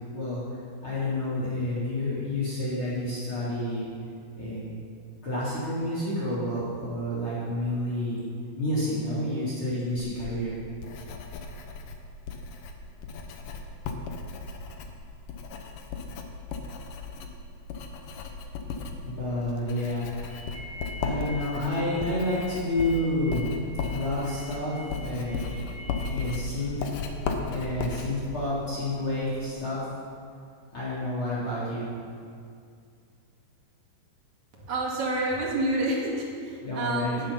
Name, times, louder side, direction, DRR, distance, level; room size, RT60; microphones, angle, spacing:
voice 1, 0.0-3.8 4.4-4.6 5.2-8.2 8.6-10.6 19.0-20.2 21.0-23.5 23.9-25.6 26.0-26.9 27.5-29.8 30.7-31.9 36.6-37.2, left 1 dB, 30° left, -8 dB, 4.1 m, -29 dB
Writing, 10.0-29.5, left 4 dB, 65° left, 2.4 m, -36 dB
sound 1, 20.3-26.2, left 1 dB, 25° right, 4.7 m, -45 dB
voice 2, 34.5-37.3, right 1 dB, 50° right, -3 dB, 3.2 m, -29 dB
17.5 x 10.5 x 5.7 m, 2.3 s
omnidirectional pair, 4.8 m